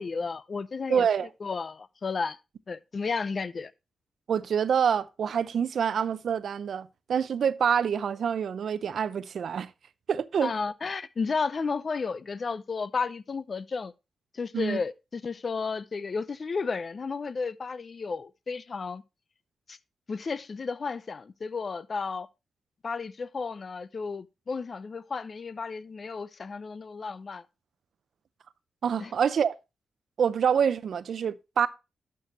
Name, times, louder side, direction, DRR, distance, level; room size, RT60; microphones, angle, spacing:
voice 1, 0.0-1.1 1.4-2.4 2.7-3.7 10.4-13.9 14.3-19.0 19.7-19.8 20.1-22.3 22.8-27.5 29.0-29.1, left 4 dB, 50° left, 0.6 m, -33 dB
voice 2, 0.9-1.3 4.3-9.7 10.1-10.5 14.5-14.8 28.8-29.5 30.2-31.7, right 7 dB, 70° right, 0.6 m, -26 dB
11.5 x 6.7 x 2.9 m
cardioid pair, 55°, 0 cm